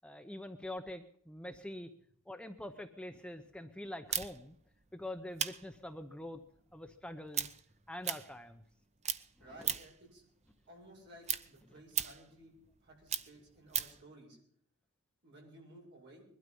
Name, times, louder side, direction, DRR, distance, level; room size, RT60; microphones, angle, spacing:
voice 1, 0.0-1.9 2.3-4.6 4.9-6.4 6.7-7.5 7.9-8.6 9.4-9.7, left 1 dB, 5° left, 6 dB, 0.8 m, -45 dB
sound 1, 4.1-8.8 9.0-10.1 10.4-14.0, right 9 dB, 30° right, 0.8 m, -38 dB
voice 2, 9.4-10.2 10.7-12.5 12.8-14.4 15.2-16.2, right 1 dB, 50° right, 0 dB, 7.6 m, -56 dB
21.5 x 12.5 x 5.4 m, 0.66 s
head